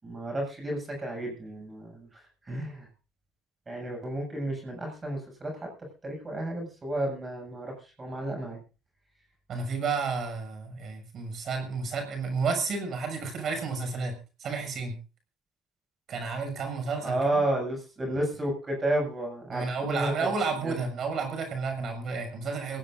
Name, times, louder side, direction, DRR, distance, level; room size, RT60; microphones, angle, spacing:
voice 1, 0.0-2.2 2.5-2.9 3.7-5.7 6.0-8.6 17.0-20.4 20.6-20.8, right 1 dB, 25° right, 1 dB, 7.6 m, -32 dB
voice 2, 9.5-14.1 14.4-15.0 16.1-17.4 19.5-22.8, right 4 dB, 50° right, 6 dB, 6.8 m, -31 dB
22.0 x 17.5 x 2.7 m, 0.33 s
supercardioid pair, 75°, 0 cm